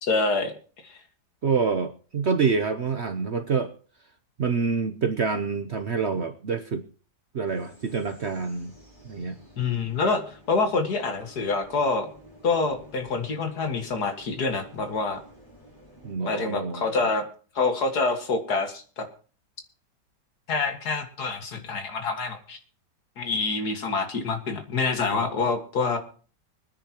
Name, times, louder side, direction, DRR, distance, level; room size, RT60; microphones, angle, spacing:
voice 1, 0.0-0.5 0.8-1.0 9.6-12.1 12.4-15.2 16.3-17.3 17.6-19.1 20.5-22.6 23.2-26.0, left 4 dB, 65° left, 6 dB, 2.3 m, -26 dB
voice 2, 1.4-3.7 4.4-6.8 7.3-8.7 9.0-9.3 16.0-16.9 25.1-25.2, right 5 dB, 50° right, 9 dB, 0.9 m, -27 dB
sound 1, 7.4-16.2, equal, 25° left, 6.4 m, -52 dB
24.5 x 10.0 x 2.9 m, 0.41 s
omnidirectional pair, 1.9 m